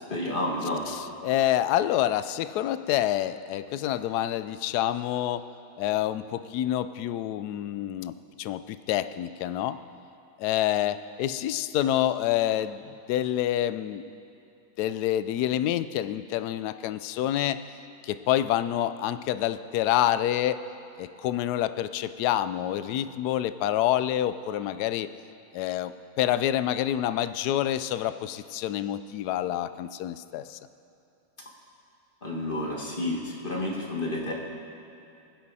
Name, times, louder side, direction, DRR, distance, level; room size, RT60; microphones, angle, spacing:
voice 1, 0.1-0.8 32.2-34.3, left 1 dB, 25° left, -2 dB, 2.0 m, -30 dB
voice 2, 1.2-5.4 5.8-9.8 10.4-12.8 13.1-14.1 14.8-17.6 18.0-20.7 21.0-25.1 25.5-30.6, left 12 dB, 75° left, 13 dB, 0.9 m, -27 dB
25.5 x 10.0 x 4.2 m, 2.7 s
omnidirectional pair, 2.2 m